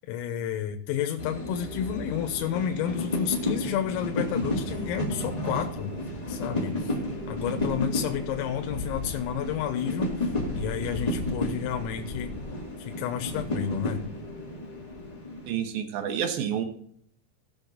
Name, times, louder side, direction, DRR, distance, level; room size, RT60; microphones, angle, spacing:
voice 1, 0.1-6.0 6.3-6.9 7.3-12.4 12.8-14.0, left 9 dB, 90° left, 5 dB, 3.8 m, -31 dB
sound 1, 1.2-15.5, left 1 dB, 10° left, 2.3 m, -32 dB
voice 2, 15.5-16.7, right 8 dB, 80° right, 6 dB, 2.1 m, -29 dB
17.5 x 6.5 x 4.0 m, 0.65 s
omnidirectional pair, 5.9 m